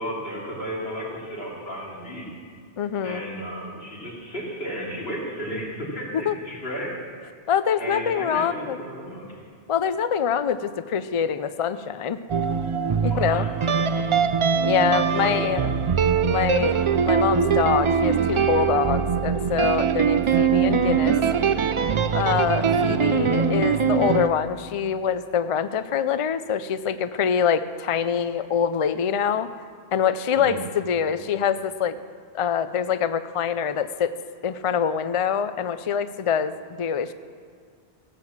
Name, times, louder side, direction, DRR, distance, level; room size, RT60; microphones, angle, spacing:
voice 1, 0.0-2.3 3.0-7.0 7.8-9.4 13.1-14.0 15.2-15.7 22.7-22.9 30.3-30.6, equal, 65° left, -5 dB, 3.4 m, -34 dB
voice 2, 2.8-3.2 6.3-6.4 7.5-8.8 9.7-12.2 13.0-13.5 14.6-15.7 16.3-16.8 17.0-21.2 22.1-29.5 29.9-32.0 32.3-34.1 34.4-36.5 36.8-37.1, left 7 dB, 50° left, 12 dB, 0.4 m, -25 dB
sound 1, 12.3-24.3, right 6 dB, 50° right, 0.3 m, -22 dB
16.5 x 8.2 x 7.2 m, 2.1 s
omnidirectional pair, 1.1 m